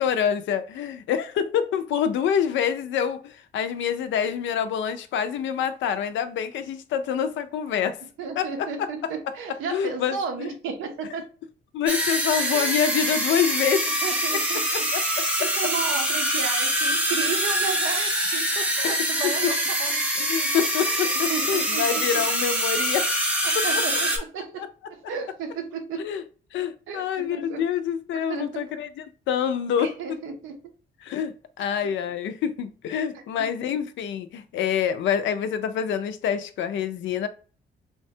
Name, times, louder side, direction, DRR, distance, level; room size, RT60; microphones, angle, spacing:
voice 1, 0.0-8.0 8.4-9.1 9.7-10.5 11.7-13.9 14.7-15.5 18.8-18.9 19.2-19.5 20.2-23.1 23.6-23.8 24.6-24.7 26.0-26.2 26.5-29.9 31.0-37.3, left 8 dB, 70° left, 0.4 m, -26 dB
voice 2, 8.2-11.2 12.3-12.7 14.0-14.6 15.1-20.5 20.9-22.0 23.4-24.6 24.9-26.0 26.9-27.6 28.3-28.7 29.8-30.6 33.4-33.5, right 5 dB, 85° right, 0.6 m, -34 dB
sound 1, 11.9-24.2, equal, 5° right, 0.6 m, -25 dB
3.3 x 2.1 x 2.7 m
cardioid pair, 90°, 20 cm